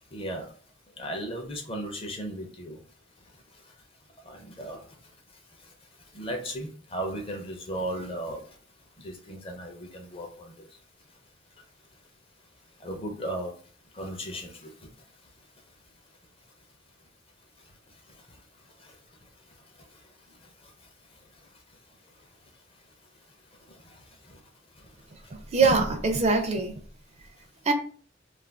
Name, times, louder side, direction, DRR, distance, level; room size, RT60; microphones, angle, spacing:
voice 1, 0.1-0.5 1.0-2.8 3.3-3.7 4.2-5.0 5.5-5.7 6.1-8.6 9.0-10.8 12.8-13.5 13.9-14.9 17.6-18.4 18.8-19.0 19.2-20.0 20.3-21.5 22.2-22.3 23.7-24.4 24.7-24.9 25.2-25.3, right 1 dB, 30° left, 0.6 m, -38 dB
voice 2, 25.3-26.7 27.7-27.8, right 4 dB, 35° right, 0.4 m, -23 dB
2.4 x 2.2 x 3.3 m
head